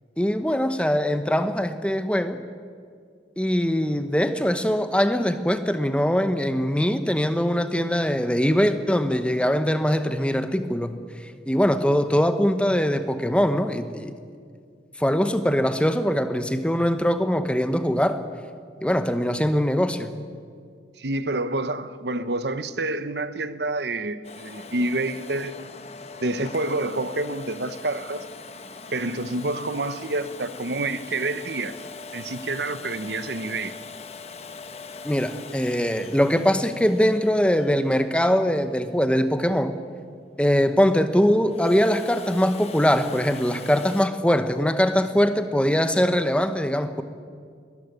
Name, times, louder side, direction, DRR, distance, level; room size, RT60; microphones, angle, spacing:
voice 1, 0.2-2.4 3.4-14.1 15.0-18.2 18.8-20.1 35.0-39.8 40.4-47.0, equal, 5° left, 0.9 m, -22 dB
voice 2, 21.0-25.7 26.2-28.2 28.9-31.8 32.1-33.8, right 2 dB, 70° right, 0.9 m, -28 dB
Domestic sounds home sounds, 24.2-39.0 41.3-44.1, left 4 dB, 35° left, 1.0 m, -42 dB
21.0 x 13.5 x 9.8 m
head